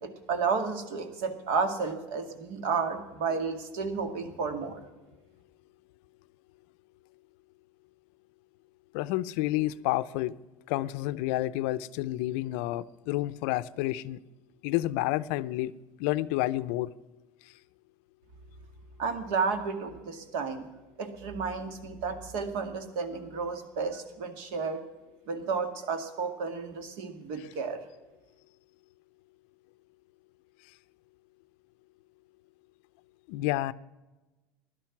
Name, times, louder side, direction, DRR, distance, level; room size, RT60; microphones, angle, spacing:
voice 1, 0.0-4.8 19.0-20.7 21.0-24.8 25.3-27.8, right 5 dB, 65° right, 7 dB, 2.1 m, -32 dB
voice 2, 8.9-10.4 10.7-14.2 14.6-15.7 16.0-16.9 27.4-27.5 33.3-33.7, left 16 dB, 65° left, 16 dB, 0.5 m, -30 dB
16.5 x 11.5 x 6.0 m, 1.1 s
cardioid pair, 165°, 7 cm